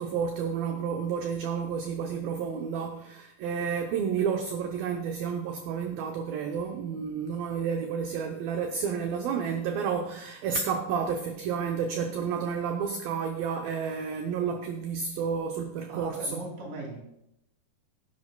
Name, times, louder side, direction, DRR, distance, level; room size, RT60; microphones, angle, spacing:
voice 1, 0.0-16.4, right 6 dB, 80° right, 4 dB, 2.1 m, -31 dB
voice 2, 15.9-17.0, right 2 dB, 50° right, -1 dB, 4.2 m, -38 dB
17.5 x 10.5 x 2.2 m, 0.81 s
omnidirectional pair, 5.0 m